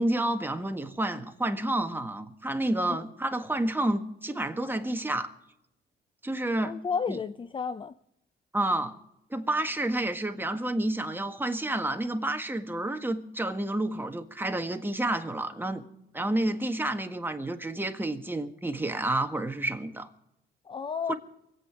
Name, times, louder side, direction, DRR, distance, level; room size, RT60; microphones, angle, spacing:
voice 1, 0.0-5.3 6.2-6.8 7.1-7.2 8.5-8.9 9.3-15.8 16.1-20.1 21.1-21.2, right 1 dB, 10° right, 1.6 m, -29 dB
voice 2, 6.6-7.9 20.7-21.1, left 6 dB, 25° left, 0.5 m, -32 dB
24.0 x 8.7 x 4.9 m
cardioid pair, 90°, 20 cm